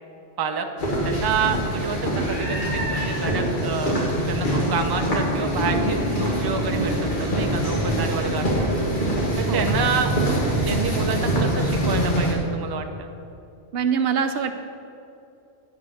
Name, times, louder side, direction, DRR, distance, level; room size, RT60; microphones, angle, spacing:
sound 1, 0.8-12.3, right 1 dB, 45° left, 1.8 m, -24 dB
voice 1, 1.0-4.0 4.3-8.7 9.4-10.1 10.7-13.1, right 5 dB, 30° right, 5 dB, 0.5 m, -28 dB
voice 2, 13.7-14.6, right 7 dB, 65° right, 7 dB, 0.8 m, -24 dB
10.0 x 5.6 x 6.4 m, 2.6 s
omnidirectional pair, 1.1 m